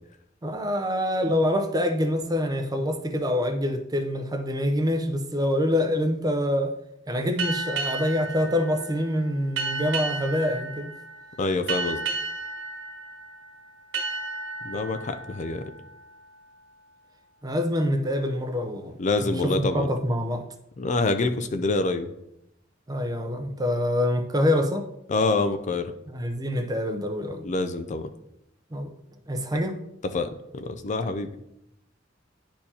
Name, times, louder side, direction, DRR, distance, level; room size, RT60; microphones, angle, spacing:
voice 1, 0.4-6.7 7.1-10.9 17.4-18.9 19.2-20.4 22.9-24.9 26.1-27.5 28.7-28.9 29.3-29.8, left 1 dB, 20° right, 0.6 m, -26 dB
sound 1, 7.4-16.7, right 3 dB, 75° right, 1.4 m, -33 dB
voice 2, 11.4-12.0 14.6-15.6 19.0-19.9 20.8-22.1 25.1-25.9 27.4-28.1 30.1-31.3, left 3 dB, 40° left, 0.5 m, -26 dB
10.0 x 4.4 x 2.8 m
head